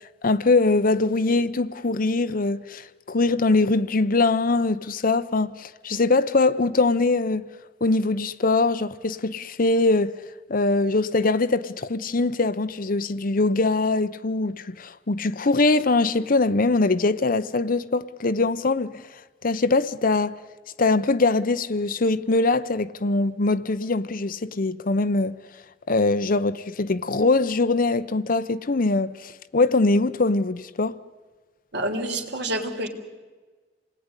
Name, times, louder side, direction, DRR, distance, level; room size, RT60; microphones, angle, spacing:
voice 1, 0.2-7.5 7.8-10.1 10.5-18.9 19.4-20.3 20.8-25.4 25.9-31.0, left 3 dB, 50° left, 0.8 m, -22 dB
voice 2, 31.7-32.9, right 1 dB, 65° right, 3.5 m, -28 dB
28.5 x 19.5 x 9.8 m
head